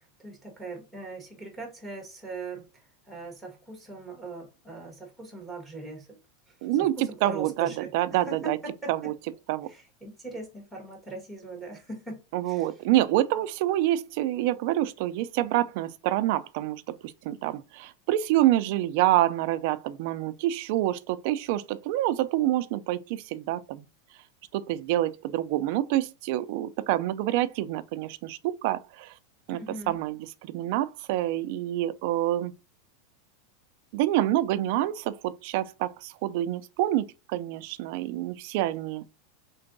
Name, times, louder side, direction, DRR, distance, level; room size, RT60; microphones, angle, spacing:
voice 1, 0.0-6.2 6.5-7.9 8.3-9.1 9.7-12.7 29.5-30.0, right 3 dB, ahead, 1.4 m, -40 dB
voice 2, 6.6-8.6 8.9-9.1 9.5-9.7 12.3-23.9 24.5-29.2 29.5-29.6 29.9-32.5 33.9-39.0, right 14 dB, 45° right, 0.4 m, -27 dB
4.3 x 3.8 x 2.6 m
supercardioid pair, 175°, 0 cm